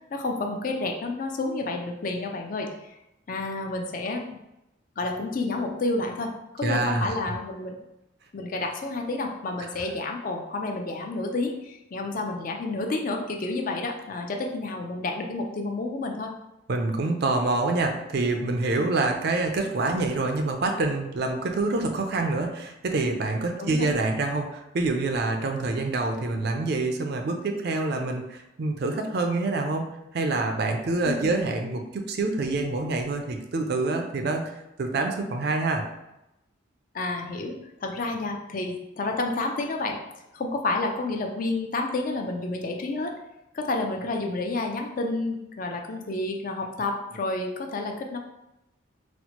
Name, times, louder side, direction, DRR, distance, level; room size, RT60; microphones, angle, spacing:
voice 1, 0.1-3.0 3.3-4.4 5.0-6.3 6.5-7.8 8.3-16.3 23.6-23.9 31.1-31.4 36.9-40.0 40.3-43.1 43.5-48.2, left 2 dB, 40° left, 3 dB, 0.4 m, -30 dB
voice 2, 6.6-7.1 16.7-35.8, right 3 dB, 55° right, 4 dB, 0.4 m, -26 dB
4.2 x 2.1 x 2.9 m, 0.90 s
head